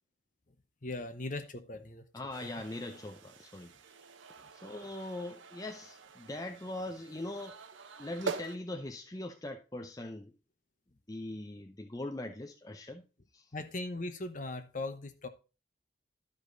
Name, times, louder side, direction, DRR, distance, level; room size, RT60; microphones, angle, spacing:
voice 1, 0.8-2.0 2.4-2.5 13.5-15.3, left 2 dB, 45° left, 0.9 m, -39 dB
voice 2, 2.1-3.7 4.5-7.6 8.0-10.3 11.1-13.0 13.3-13.5, left 1 dB, 20° left, 0.6 m, -41 dB
sound 1, 2.3-8.6, right 4 dB, 85° right, 0.8 m, -45 dB
12.0 x 5.1 x 3.9 m
head